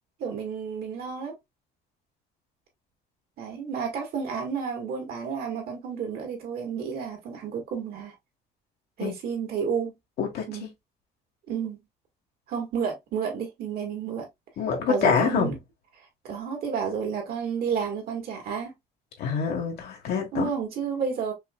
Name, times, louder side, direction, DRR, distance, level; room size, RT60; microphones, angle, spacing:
voice 1, 0.2-1.4 3.4-8.1 9.0-9.9 10.5-10.7 11.5-11.8 12.5-14.3 14.9-15.6 16.2-18.7 20.3-21.3, right 6 dB, 65° right, 2.3 m, -31 dB
voice 2, 10.2-10.7 14.6-15.5 19.2-20.5, left 6 dB, 70° left, 1.6 m, -26 dB
5.4 x 2.8 x 2.4 m
cardioid pair, 110°, 17 cm